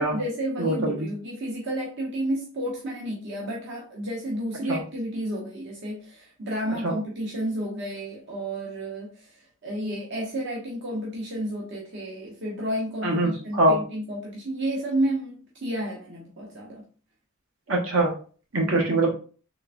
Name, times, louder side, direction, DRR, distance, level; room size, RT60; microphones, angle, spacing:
voice 1, 0.0-16.8, right 1 dB, 55° right, -3 dB, 0.8 m, -31 dB
voice 2, 0.6-0.9 4.7-4.8 6.8-6.9 13.0-13.8 17.7-18.1 18.5-19.1, right 1 dB, 75° right, 0 dB, 1.1 m, -22 dB
3.6 x 3.4 x 2.5 m, 0.40 s
head